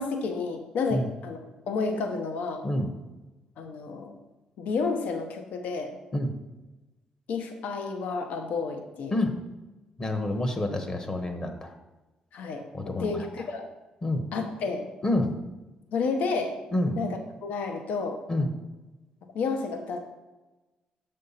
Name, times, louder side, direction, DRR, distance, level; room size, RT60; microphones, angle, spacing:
voice 1, 0.0-1.4 1.7-2.7 3.6-4.1 4.6-6.0 7.3-9.2 12.3-12.7 13.0-13.7 14.3-14.9 15.9-16.6 17.0-18.2 19.3-20.0, left 4 dB, 75° left, 5 dB, 0.9 m, -30 dB
voice 2, 10.0-11.7 12.7-13.1 14.0-14.2 15.0-15.3 16.7-17.0 18.3-18.5, left 1 dB, 30° left, 5 dB, 1.0 m, -27 dB
6.6 x 5.5 x 4.2 m, 1.1 s
cardioid pair, 80°, 3 cm